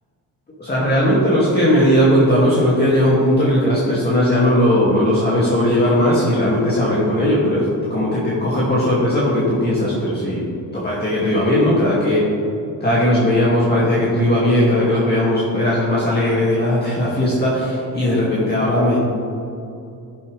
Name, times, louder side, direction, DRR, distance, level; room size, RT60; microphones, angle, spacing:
voice 1, 0.6-10.5 10.7-12.3 12.8-19.0, left 1 dB, 25° left, -8 dB, 2.3 m, -17 dB
13.0 x 7.4 x 3.4 m, 2.7 s
cardioid pair, 90°, 37 cm